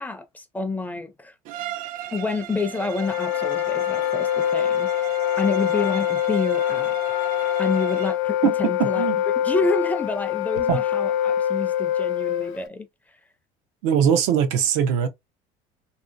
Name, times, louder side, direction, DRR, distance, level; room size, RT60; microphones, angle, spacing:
voice 1, 0.0-1.3 2.1-7.0 7.6-9.0 9.4-12.9, left 3 dB, 10° left, 0.5 m, -28 dB
Bowed string instrument, 1.4-8.3, right 13 dB, 55° right, 0.4 m, -37 dB
Wind instrument woodwind instrument, 2.7-12.7, left 11 dB, 80° left, 0.6 m, -24 dB
voice 2, 8.4-9.2 10.7-10.8 13.8-15.1, right 8 dB, 90° right, 0.7 m, -21 dB
3.0 x 2.8 x 2.5 m
cardioid pair, 135°, 16 cm